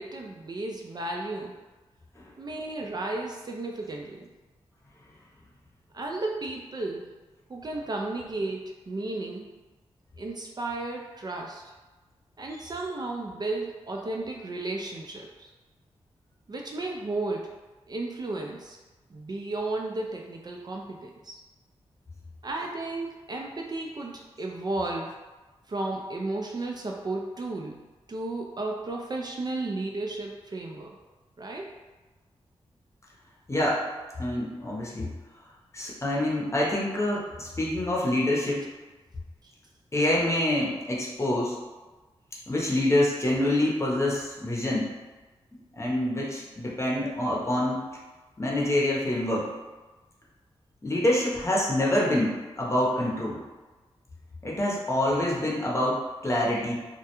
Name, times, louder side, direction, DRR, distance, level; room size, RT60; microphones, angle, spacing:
voice 1, 0.0-1.6 2.4-4.3 5.9-7.1 7.5-9.5 10.2-11.6 12.4-15.5 16.5-17.6 17.9-18.8 19.1-21.4 22.4-25.1 25.7-27.8 28.1-31.0 31.4-31.7 39.4-39.5, right 2 dB, 40° right, 0 dB, 0.3 m, -33 dB
voice 2, 33.5-33.8 34.2-35.1 35.7-38.7 39.9-41.6 42.5-44.9 45.7-47.8 48.4-49.5 50.8-53.4 54.4-56.7, left 1 dB, 25° left, -4 dB, 0.7 m, -26 dB
2.2 x 2.1 x 2.9 m, 1.2 s
cardioid pair, 50°, 11 cm